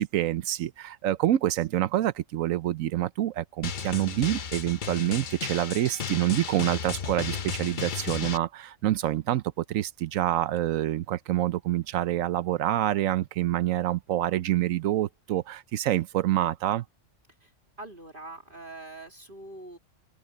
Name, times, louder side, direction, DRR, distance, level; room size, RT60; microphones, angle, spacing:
voice 1, 0.0-16.8, right 13 dB, 85° right, 1.1 m, -27 dB
Drum, 3.6-8.4, left 7 dB, 45° left, 0.8 m, -34 dB
voice 2, 17.8-19.8, right 2 dB, 40° right, 2.9 m, -43 dB
open air
omnidirectional pair, 1.4 m